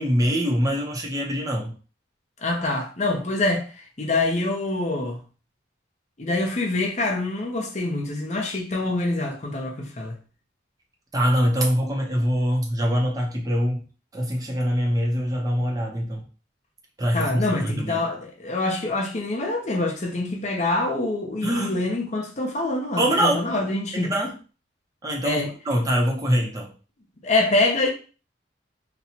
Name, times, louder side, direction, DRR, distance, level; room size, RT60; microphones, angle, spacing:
voice 1, 0.0-1.7 11.1-13.8 14.1-16.2 17.0-18.0 21.4-21.7 23.0-23.4 23.9-24.3 25.0-26.7, equal, 20° right, 0.6 m, -24 dB
voice 2, 2.4-5.2 6.2-10.2 17.1-24.1 25.2-25.5 27.2-27.9, left 2 dB, 40° left, 0.7 m, -25 dB
4.2 x 2.1 x 2.8 m
head